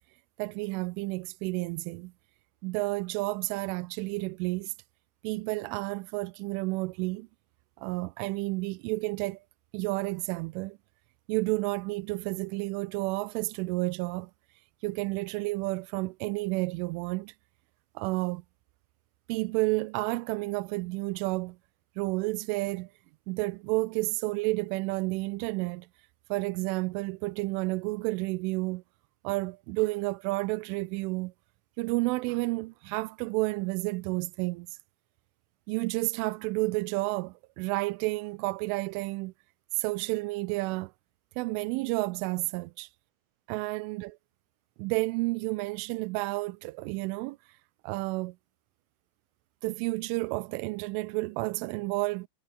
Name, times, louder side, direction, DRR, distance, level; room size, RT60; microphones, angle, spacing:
voice 1, 0.4-2.1 2.6-4.7 5.2-7.3 7.8-9.4 9.7-10.8 11.3-14.3 14.8-17.3 18.0-18.4 19.3-21.6 22.0-22.9 23.3-25.9 26.3-28.8 29.2-31.3 31.8-34.8 35.7-39.3 39.7-40.9 41.4-42.9 43.5-44.2 44.8-47.4 47.8-48.4 49.6-52.3, right 23 dB, 85° right, 3.0 m, -31 dB
omnidirectional pair, 5.7 m